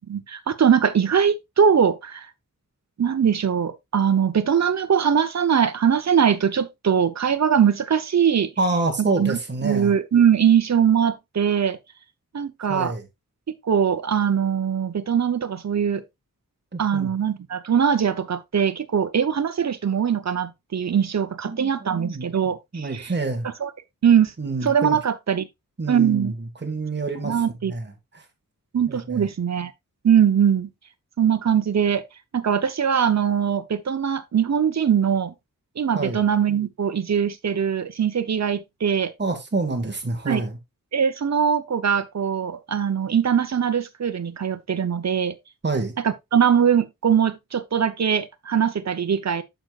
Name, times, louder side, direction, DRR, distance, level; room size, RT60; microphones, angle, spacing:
voice 1, 0.1-2.3 3.0-8.5 9.0-11.8 12.3-12.9 13.6-16.0 16.8-23.1 23.6-23.7 24.0-24.3 24.6-25.5 25.9-26.3 27.2-27.7 28.7-29.7 30.0-30.7 31.2-32.1 32.3-35.3 35.8-39.1 40.3-40.4 40.9-45.4 46.0-49.4, right 8 dB, 50° right, 0.8 m, -21 dB
voice 2, 8.6-9.9 12.7-13.0 16.7-17.1 21.4-22.3 22.7-23.5 24.4-25.0 25.8-27.3 27.6-28.2 28.9-29.3 35.9-36.3 39.2-40.6 45.6-45.9, right 3 dB, 30° right, 1.8 m, -27 dB
8.8 x 6.6 x 2.4 m
wide cardioid pair, 110°, 34 cm